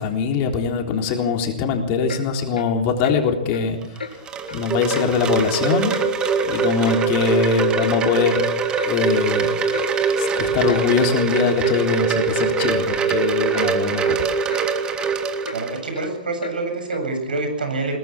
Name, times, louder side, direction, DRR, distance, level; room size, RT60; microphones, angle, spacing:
voice 1, 0.0-4.3 4.5-5.9 6.4-8.4 8.8-9.5 10.2-14.3, left 5 dB, 35° left, 3 dB, 3.8 m, -22 dB
Clock, 2.1-2.2 2.5-2.7 3.0-3.2 3.5-3.7 4.0-4.1 4.5-4.6 4.9-5.1 5.4-5.6 5.9-6.0 6.4-7.0 7.3-7.4 7.8-8.0 8.3-8.4 8.8-8.9 9.3-9.4 9.7-9.9 10.2-10.4 10.7-10.8 11.2-11.3 11.6-11.8 12.1-12.2 12.6-12.7 13.1-13.2 13.5-13.7 14.0-14.2 14.5-14.7 15.0-15.1 15.4-15.6 15.9-16.1 16.4-16.6 16.9-17.1, left 4 dB, 90° left, 2.8 m, -35 dB
Wind chime, 3.8-16.1, right 5 dB, 20° right, 2.2 m, -23 dB
voice 2, 15.5-18.0, right 3 dB, 80° right, 6 dB, 7.9 m, -26 dB
22.5 x 18.5 x 6.2 m, 0.82 s
hypercardioid pair, 130°, 5 cm